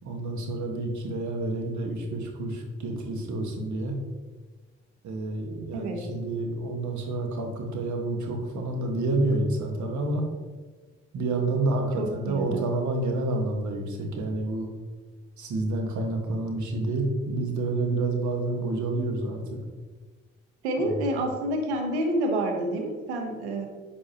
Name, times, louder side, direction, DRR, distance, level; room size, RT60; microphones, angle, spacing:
voice 1, 0.0-4.0 5.0-10.2 11.1-14.7 15.4-19.6 20.8-20.9, right 2 dB, 65° right, 2 dB, 1.6 m, -29 dB
voice 2, 5.7-6.1 12.0-12.6 20.6-23.7, right 1 dB, 90° right, 3 dB, 1.0 m, -28 dB
9.8 x 5.4 x 2.9 m, 1.3 s
hypercardioid pair, 45°, 32 cm